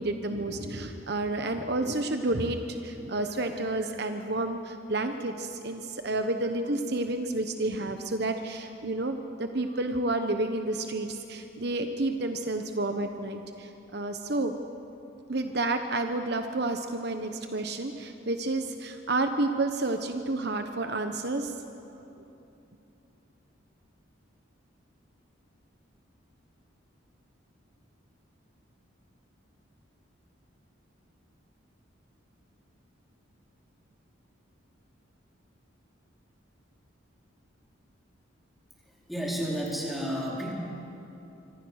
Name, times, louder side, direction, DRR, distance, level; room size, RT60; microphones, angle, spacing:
voice 1, 0.0-14.5 15.3-21.5, right 2 dB, 50° right, 6 dB, 1.1 m, -30 dB
voice 2, 38.8-40.5, equal, ahead, -4 dB, 4.3 m, -32 dB
26.0 x 25.5 x 6.5 m, 2.9 s
head